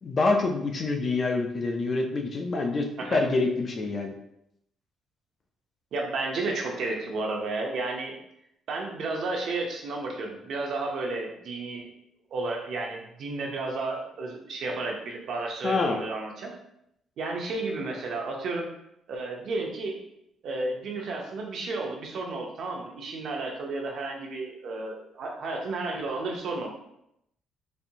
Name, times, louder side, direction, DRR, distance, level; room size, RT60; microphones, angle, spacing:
voice 1, 0.0-4.1 15.6-16.0, left 3 dB, 30° left, 3 dB, 0.4 m, -26 dB
voice 2, 5.9-8.1 8.7-11.9 12.3-16.5 17.2-18.7 19.1-20.0 20.4-26.7, right 3 dB, 55° right, 0 dB, 0.7 m, -32 dB
4.2 x 2.6 x 2.7 m, 0.78 s
cardioid pair, 175°, 0 cm